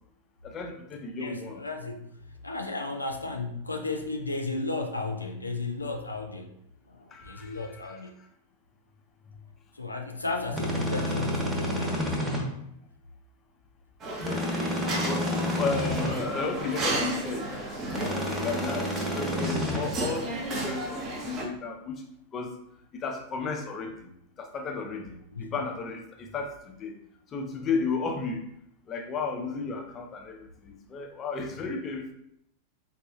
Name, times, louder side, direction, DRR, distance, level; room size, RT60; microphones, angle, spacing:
voice 1, 0.4-1.6 7.1-8.3 14.8-17.7 18.1-21.0 21.2-22.0 22.3-22.5 22.9-24.1 24.4-27.0 27.3-28.5 28.9-32.1, left 4 dB, 25° left, 3 dB, 0.5 m, -34 dB
voice 2, 1.2-2.1 2.4-6.5 6.9-8.1 9.7-12.2 25.3-25.6, left 3 dB, 80° left, 3 dB, 0.3 m, -34 dB
sound 1, 10.5-12.4 14.2-16.1 17.9-19.8, left 1 dB, 15° right, 1.0 m, -29 dB
sound 2, 14.0-21.5, right 2 dB, 30° right, 0.7 m, -34 dB
4.7 x 2.4 x 2.4 m, 0.76 s
figure-of-eight pair, 90°, 0 cm